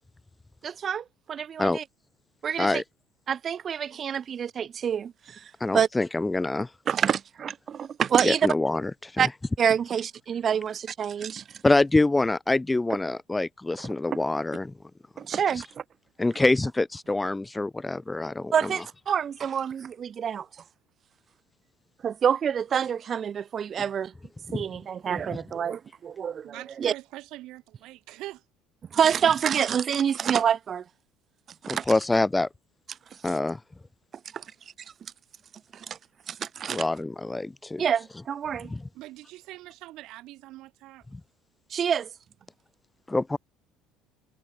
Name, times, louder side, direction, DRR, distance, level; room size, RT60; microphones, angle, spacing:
voice 1, 0.6-1.8 2.4-2.8 3.3-5.4 5.7-5.9 6.9-8.5 9.2-9.3 9.6-11.4 14.1-14.2 15.2-15.7 18.5-20.5 22.0-24.1 24.5-26.9 28.9-30.8 31.6-31.8 34.3-34.4 35.7-36.0 36.3-36.8 37.8-38.7 41.7-42.1, right 8 dB, 45° right, 0.6 m, -27 dB
voice 2, 5.6-6.7 8.2-9.3 11.6-14.7 15.5-15.6 16.2-18.7 24.5-24.6 31.7-32.5 33.2-33.6 36.7-37.8 38.7-38.8 41.1-41.2 43.1-43.4, left 2 dB, 15° left, 0.5 m, -25 dB
voice 3, 26.4-28.4 38.9-41.1, right 17 dB, 70° right, 3.5 m, -43 dB
supercardioid pair, 80°, 0 cm